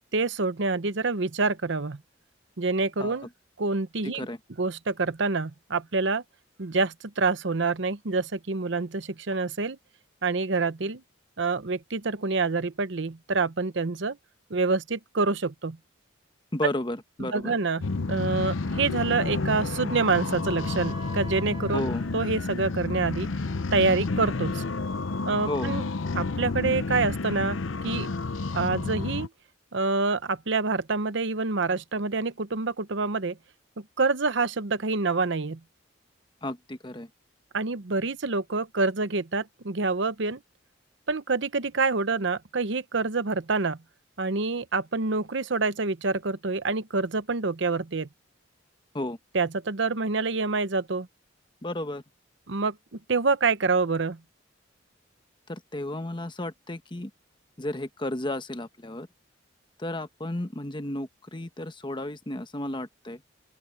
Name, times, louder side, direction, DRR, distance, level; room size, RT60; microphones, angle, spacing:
voice 1, 0.1-2.0 2.6-3.3 3.6-4.3 4.6-6.2 6.6-9.8 10.2-11.0 11.4-14.2 14.5-15.8 17.2-21.9 22.1-23.3 23.7-24.6 25.3-25.8 26.1-27.6 27.8-28.1 28.5-29.3 29.7-33.4 33.8-35.6 37.5-40.4 41.1-43.8 44.2-48.1 49.3-51.1 52.5-52.8 53.1-54.2, right 3 dB, 65° right, 0.9 m, -27 dB
voice 2, 4.0-4.4 16.5-17.5 21.7-22.0 25.5-25.7 36.4-37.1 48.9-49.2 51.6-52.0 55.5-57.1 57.6-59.1 59.8-63.2, left 1 dB, 25° left, 1.1 m, -33 dB
sound 1, 17.8-29.3, left 3 dB, 85° left, 0.8 m, -30 dB
Wind instrument woodwind instrument, 19.3-22.9, right 3 dB, 25° right, 3.5 m, -49 dB
open air
head